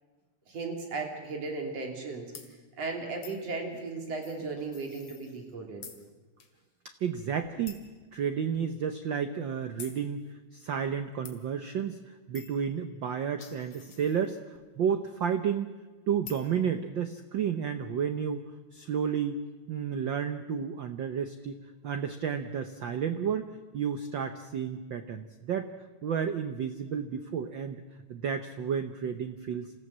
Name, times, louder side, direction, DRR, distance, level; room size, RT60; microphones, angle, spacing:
voice 1, 0.5-2.3 2.8-5.8, right 3 dB, 60° right, 2 dB, 4.2 m, -36 dB
sound 1, 2.3-2.5 3.2-3.5 4.2-5.5 5.8-6.0 6.4-6.5 6.9-7.0 7.6-7.9 8.5-8.6 9.8-10.0 11.2-11.4 12.3-12.6 13.1-14.6 16.2-16.5, left 7 dB, 55° left, 2.9 m, -48 dB
voice 2, 7.0-7.8 8.1-10.2 10.5-14.4 14.8-15.7 16.1-18.4 18.7-19.4 19.7-21.6 21.8-25.7 26.0-27.8 28.1-29.7, right 7 dB, 90° right, 8 dB, 1.0 m, -31 dB
26.5 x 15.5 x 7.4 m, 1.3 s
omnidirectional pair, 3.4 m